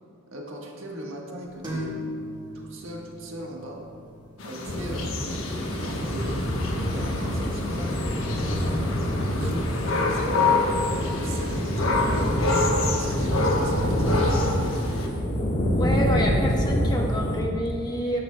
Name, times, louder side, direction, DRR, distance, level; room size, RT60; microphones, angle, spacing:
voice 1, 0.3-1.9 2.5-3.8 4.4-5.1 5.5-6.5 6.9-8.2 9.1-10.6 11.1-14.7, right 1 dB, 65° right, -1 dB, 1.5 m, -39 dB
sound 1, 1.6-9.1, equal, 20° right, 1.5 m, -41 dB
sound 2, 4.4-15.1, left 3 dB, 70° left, 1.1 m, -28 dB
sound 3, 4.7-17.4, equal, 40° left, 1.3 m, -26 dB
voice 2, 15.7-18.2, equal, 20° left, 0 dB, 1.0 m, -28 dB
13.5 x 10.0 x 2.2 m, 2.4 s
head